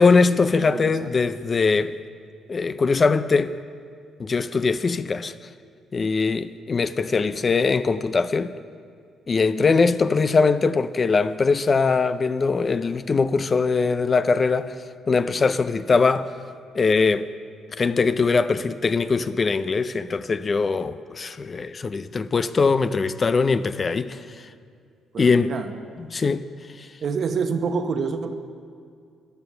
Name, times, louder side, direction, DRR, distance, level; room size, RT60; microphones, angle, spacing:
voice 1, 0.0-2.0 2.5-3.6 4.2-5.3 5.9-8.5 9.3-14.8 15.1-16.3 16.7-17.3 17.8-24.2 25.2-25.5 26.0-26.4 26.8-26.9, left 4 dB, 35° left, 0.4 m, -21 dB
voice 2, 0.5-1.1 25.1-25.7 27.0-28.3, right 5 dB, 55° right, 1.0 m, -27 dB
14.5 x 11.0 x 5.5 m
cardioid pair, 90°, 0 cm